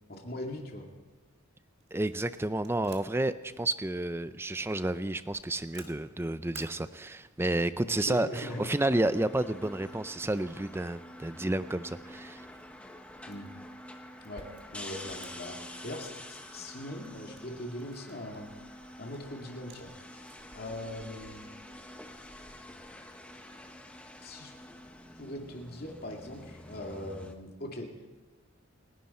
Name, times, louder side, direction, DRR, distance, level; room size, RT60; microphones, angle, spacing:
voice 1, 0.1-0.9 7.9-8.7 13.3-13.5 14.2-15.6 15.8-18.5 19.0-19.9 20.5-21.5 24.2-24.5 25.2-27.9, left 1 dB, 45° left, 1 dB, 2.4 m, -40 dB
sound 1, 1.8-20.6, right 5 dB, 50° right, 1.9 m, -59 dB
voice 2, 1.9-12.4, right 1 dB, 10° right, 13 dB, 0.4 m, -31 dB
sound 2, 8.3-27.3, left 1 dB, 5° left, 0.9 m, -48 dB
28.5 x 11.5 x 4.4 m, 1.3 s
head